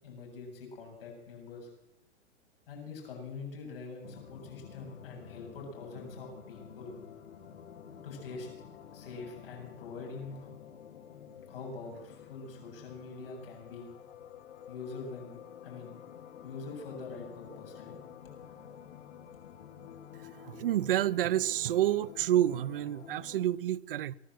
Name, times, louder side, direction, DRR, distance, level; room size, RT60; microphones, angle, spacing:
voice 1, 0.0-1.7 2.7-7.0 8.0-8.5 8.9-10.5 11.5-13.9 14.7-15.4 15.6-16.0 16.4-17.9, left 4 dB, 55° left, 7.4 m, -44 dB
sound 1, 4.0-23.5, left 8 dB, 80° left, 2.4 m, -50 dB
voice 2, 20.4-24.1, right 12 dB, 50° right, 0.7 m, -29 dB
24.0 x 16.5 x 7.7 m
hypercardioid pair, 175°, 35 cm